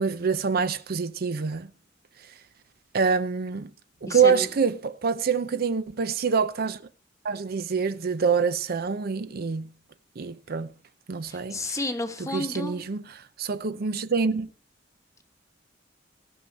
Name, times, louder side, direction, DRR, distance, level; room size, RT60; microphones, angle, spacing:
voice 1, 0.0-1.7 2.2-2.3 2.9-3.7 4.0-6.8 7.2-9.7 10.2-10.7 11.1-11.8 12.3-13.0 13.4-14.5, right 5 dB, 55° right, 0.6 m, -26 dB
voice 2, 4.0-4.5 11.3-12.8, left 2 dB, 15° left, 1.1 m, -31 dB
17.0 x 6.2 x 5.4 m
head